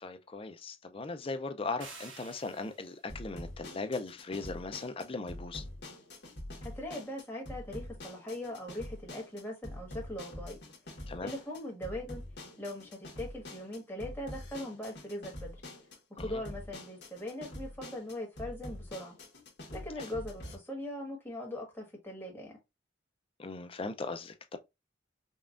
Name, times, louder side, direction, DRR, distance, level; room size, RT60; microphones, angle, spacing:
voice 1, 0.0-5.6 11.1-11.3 16.2-16.4 23.4-24.6, left 3 dB, 30° left, 0.5 m, -38 dB
sound 1, 1.8-3.1, right 4 dB, 85° right, 1.4 m, -50 dB
sound 2, 3.1-20.5, left 1 dB, 60° left, 1.4 m, -45 dB
voice 2, 6.6-10.6 11.2-12.2 12.6-15.5 16.2-19.1 19.7-22.6, left 1 dB, 10° left, 1.5 m, -40 dB
5.4 x 2.4 x 2.5 m
head